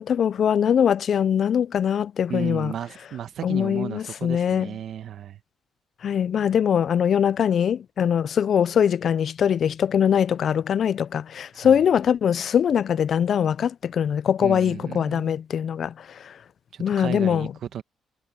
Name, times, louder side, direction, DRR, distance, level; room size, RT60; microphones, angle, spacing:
voice 1, 0.0-2.7 3.4-4.7 6.0-16.3 16.8-17.5, left 8 dB, 60° left, 0.4 m, -22 dB
voice 2, 2.3-5.4 11.5-11.8 14.4-15.3 16.7-17.8, right 9 dB, 65° right, 1.4 m, -34 dB
cardioid pair, 90°, 0 cm